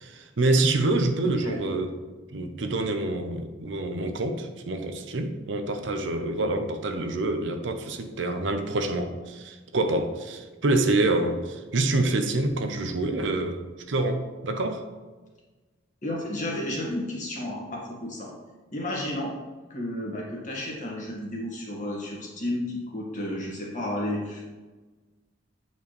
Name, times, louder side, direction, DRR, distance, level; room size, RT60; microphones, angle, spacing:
voice 1, 0.0-1.9 2.3-13.6 13.9-14.8, right 2 dB, 70° right, 7 dB, 0.7 m, -26 dB
voice 2, 16.0-18.3 18.7-19.3 19.7-24.5, left 1 dB, 45° left, -3 dB, 1.7 m, -32 dB
8.3 x 4.5 x 3.2 m, 1.3 s
head